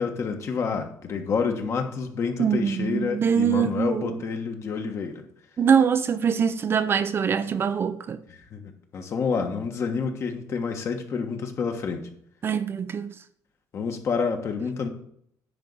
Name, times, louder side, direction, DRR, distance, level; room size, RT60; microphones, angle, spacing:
voice 1, 0.0-5.2 8.3-12.1 13.7-14.9, left 5 dB, 45° left, 1.4 m, -28 dB
voice 2, 2.4-4.2 5.6-8.2 12.4-13.1, right 7 dB, 35° right, 0.5 m, -23 dB
10.0 x 3.9 x 7.0 m
cardioid pair, 115°, 7 cm